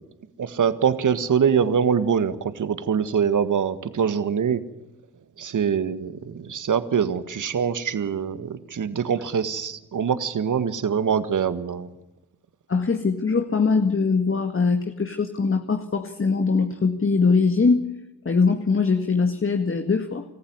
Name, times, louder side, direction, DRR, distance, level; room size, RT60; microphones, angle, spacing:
voice 1, 0.4-4.6 5.4-11.9, right 7 dB, 50° right, 12 dB, 1.8 m, -24 dB
voice 2, 12.7-17.8 18.3-20.2, left 4 dB, 35° left, 6 dB, 2.0 m, -22 dB
26.0 x 14.5 x 9.8 m, 0.95 s
supercardioid pair, 50°, 38 cm